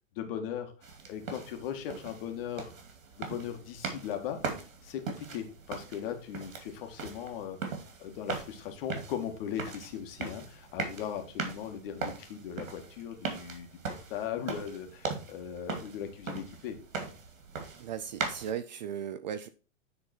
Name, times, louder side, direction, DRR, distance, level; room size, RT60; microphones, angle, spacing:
voice 1, 0.2-0.7 1.1-2.7 3.2-4.4 4.8-7.6 8.0-13.7 14.1-16.8, left 9 dB, 45° left, 1.8 m, -38 dB
sound 1, 0.8-18.5, right 5 dB, 90° right, 2.4 m, -40 dB
voice 2, 17.8-19.5, right 8 dB, 35° right, 0.4 m, -37 dB
9.4 x 4.0 x 4.3 m
hypercardioid pair, 150°, 39 cm